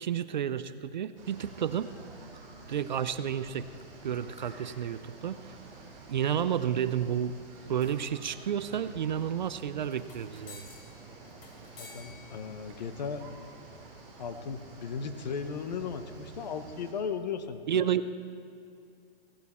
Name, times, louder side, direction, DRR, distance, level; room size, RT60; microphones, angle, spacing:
voice 1, 0.0-1.9 2.7-3.7 4.0-5.6 6.1-7.4 7.7-10.7 17.7-18.0, right 9 dB, 50° right, 13 dB, 0.4 m, -31 dB
sound 1, 1.2-16.9, right 3 dB, 30° right, 3.9 m, -49 dB
sound 2, 2.8-14.8, left 3 dB, 65° left, 2.4 m, -57 dB
voice 2, 11.8-13.2 14.2-17.9, left 6 dB, 45° left, 10 dB, 0.8 m, -36 dB
16.5 x 12.5 x 4.3 m, 2.5 s
hypercardioid pair, 175°, 30 cm